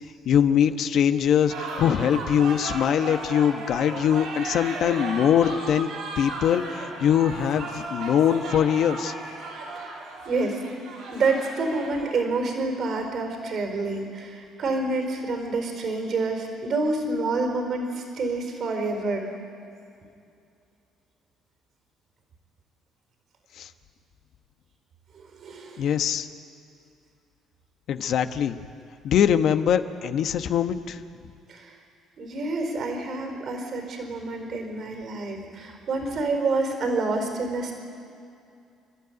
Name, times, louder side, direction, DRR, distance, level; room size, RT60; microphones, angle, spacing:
voice 1, 0.2-5.9 6.2-9.1 23.6-23.7 25.8-26.3 27.9-28.6 29.0-31.0, left 9 dB, 65° left, 9 dB, 1.1 m, -22 dB
sound 1, 1.5-12.1, right 2 dB, 80° right, 6.6 m, -35 dB
voice 2, 10.2-10.6 11.1-19.3 25.1-25.9 31.5-31.8 32.2-37.7, right 3 dB, 55° right, 4 dB, 4.4 m, -28 dB
29.5 x 12.5 x 9.4 m, 2.5 s
supercardioid pair, 70°, 0 cm